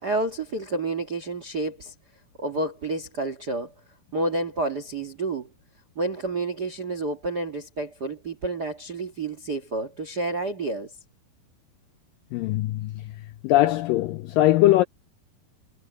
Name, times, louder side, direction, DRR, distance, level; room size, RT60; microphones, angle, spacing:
voice 1, 0.0-1.9 2.4-3.7 4.1-5.5 5.9-10.9, right 2 dB, 55° right, 1.1 m, -29 dB
voice 2, 12.3-13.2 13.4-14.8, left 15 dB, 85° left, 2.0 m, -21 dB
omnidirectional pair, 4.6 m